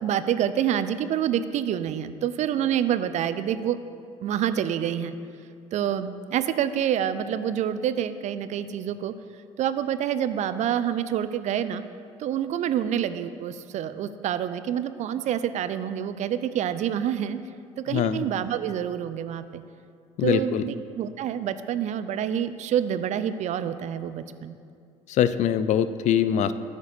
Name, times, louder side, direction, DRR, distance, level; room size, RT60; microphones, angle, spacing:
voice 1, 0.0-3.8 4.2-5.1 5.7-9.1 9.6-11.8 12.2-17.4 17.8-19.6 20.2-24.6, right 9 dB, 55° right, 12 dB, 0.5 m, -27 dB
voice 2, 17.9-18.2 20.2-20.6 25.1-26.5, left 9 dB, 55° left, 13 dB, 0.4 m, -23 dB
8.2 x 5.1 x 6.7 m, 2.3 s
hypercardioid pair, 60°, 15 cm